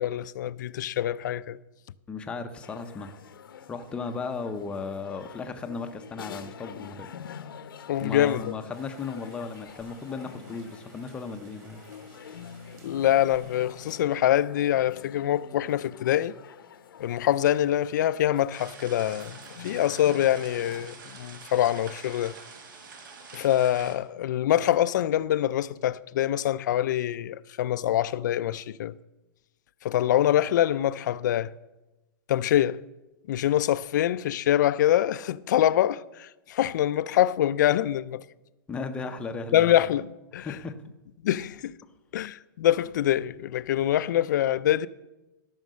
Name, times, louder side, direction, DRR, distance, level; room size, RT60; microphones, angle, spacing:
voice 1, 0.0-1.6 7.9-8.5 12.8-16.3 17.0-19.3 19.6-22.4 23.3-29.0 29.8-31.5 32.3-32.8 33.3-38.2 39.5-40.1 40.3-40.5 41.2-41.7 42.1-44.9, left 12 dB, 60° left, 0.4 m, -25 dB
voice 2, 2.1-3.1 3.7-7.1 8.0-11.8 38.7-39.7 40.4-40.8, left 4 dB, 10° left, 0.6 m, -35 dB
sound 1, 2.6-20.9, left 7 dB, 85° left, 0.9 m, -46 dB
Rain, 8.7-13.9, right 3 dB, 25° right, 1.9 m, -56 dB
sound 2, 18.5-23.9, right 5 dB, 70° right, 1.9 m, -46 dB
13.0 x 6.4 x 6.3 m
hypercardioid pair, 160°, 11 cm